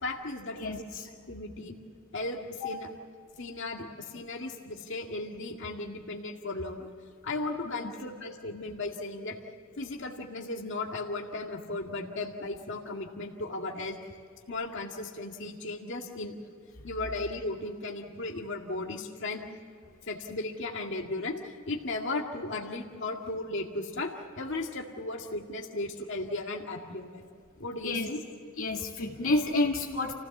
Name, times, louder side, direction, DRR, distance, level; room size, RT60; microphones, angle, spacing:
voice 1, 0.0-0.8 1.3-1.8 2.1-2.9 3.4-6.9 7.2-9.4 9.8-14.0 14.5-16.3 16.8-19.4 20.1-27.2 27.6-28.2, left 2 dB, 60° left, 1 dB, 2.0 m, -36 dB
voice 2, 0.5-1.1 2.6-2.7 7.7-7.9 27.8-28.1 28.6-30.1, left 2 dB, 75° left, -1 dB, 2.1 m, -30 dB
28.5 x 16.5 x 7.3 m, 2.3 s
head